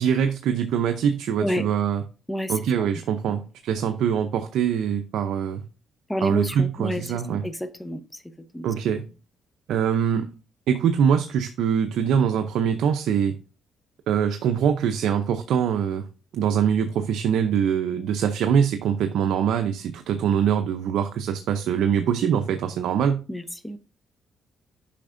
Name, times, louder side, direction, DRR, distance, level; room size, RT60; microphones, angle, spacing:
voice 1, 0.0-2.0 2.5-5.6 6.2-7.4 8.6-9.1 9.7-10.3 10.7-13.4 14.1-16.1 16.3-23.2, right 8 dB, 80° right, 0.6 m, -23 dB
voice 2, 2.3-2.9 3.3-3.4 6.1-8.2 8.5-8.7 23.3-23.8, equal, 10° left, 0.8 m, -30 dB
8.4 x 5.7 x 2.6 m
cardioid pair, 90°, 0 cm